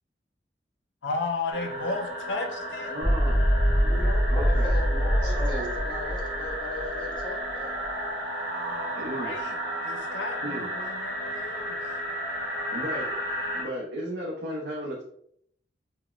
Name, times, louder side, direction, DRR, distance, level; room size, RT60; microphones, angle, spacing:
voice 1, 1.0-3.0 3.3-3.8 8.5-9.6 9.8-11.8, left 3 dB, 85° left, 5 dB, 0.5 m, -34 dB
sound 1, 1.5-13.6, equal, 85° right, 0.9 m, -33 dB
voice 2, 2.9-3.5 4.3-4.8 5.2-5.8 8.9-9.3 10.4-10.7 12.7-13.1 13.5-15.0, equal, 65° right, -3 dB, 0.5 m, -34 dB
sound 2, 3.0-7.2, equal, 5° right, 0.8 m, -24 dB
voice 3, 3.8-7.8, left 2 dB, 25° left, -2 dB, 0.7 m, -38 dB
3.8 x 2.0 x 2.2 m, 0.69 s
head